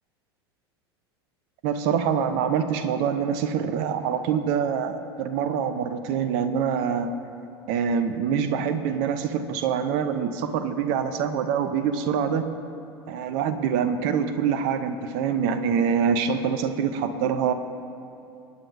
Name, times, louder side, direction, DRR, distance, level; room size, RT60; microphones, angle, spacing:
voice 1, 1.6-7.1 7.7-12.4 13.1-17.5, right 7 dB, 50° right, 9 dB, 0.8 m, -25 dB
28.0 x 9.5 x 2.7 m, 2.7 s
figure-of-eight pair, 80°, 14 cm